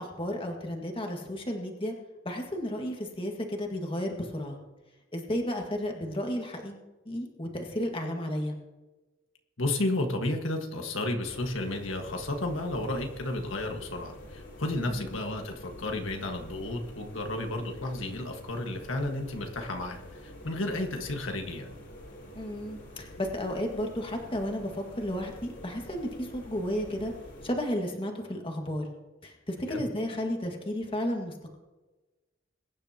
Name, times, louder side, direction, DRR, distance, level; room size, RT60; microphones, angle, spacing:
voice 1, 0.0-1.9 2.3-4.6 5.1-6.8 7.1-8.6 14.9-15.2 22.3-27.1 27.4-28.9 29.2-31.6, equal, 25° left, 2 dB, 1.9 m, -33 dB
voice 2, 9.6-21.7 29.7-29.8, left 2 dB, 85° left, 3 dB, 1.6 m, -32 dB
sound 1, 11.2-27.5, left 1 dB, 60° left, 3.8 m, -47 dB
22.5 x 10.5 x 2.9 m, 1.1 s
head